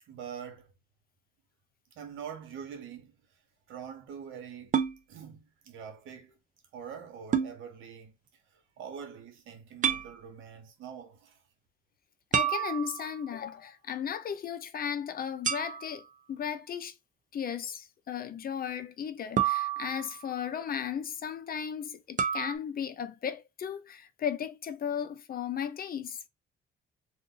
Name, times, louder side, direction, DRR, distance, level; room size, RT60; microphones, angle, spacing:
voice 1, 0.0-0.7 1.9-3.4 3.7-4.8 5.1-6.4 6.7-8.2 8.5-11.4, right 7 dB, 85° right, 1.1 m, -44 dB
sound 1, 4.7-5.0 7.3-7.5 9.8-10.1 12.3-13.2 15.4-16.1 19.4-20.3 22.2-22.6, right 8 dB, 40° right, 0.6 m, -29 dB
voice 2, 12.3-16.9 17.3-26.2, left 8 dB, 50° left, 0.6 m, -35 dB
2.6 x 2.5 x 3.7 m
cardioid pair, 90°, 20 cm